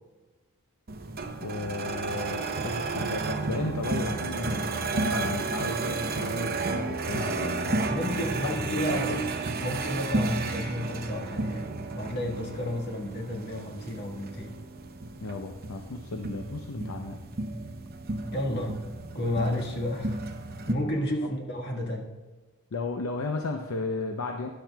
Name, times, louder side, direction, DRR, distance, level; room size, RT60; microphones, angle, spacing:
sound 1, 0.9-20.7, right 3 dB, 45° right, 0.7 m, -32 dB
voice 1, 1.4-7.9 8.4-9.2 15.2-17.2 22.7-24.5, left 3 dB, 65° left, 4 dB, 0.6 m, -34 dB
voice 2, 7.9-9.3 9.6-14.6 18.3-18.8 19.1-20.2 20.7-22.2, left 1 dB, 50° left, -1 dB, 1.6 m, -32 dB
13.0 x 10.5 x 2.3 m, 1.2 s
head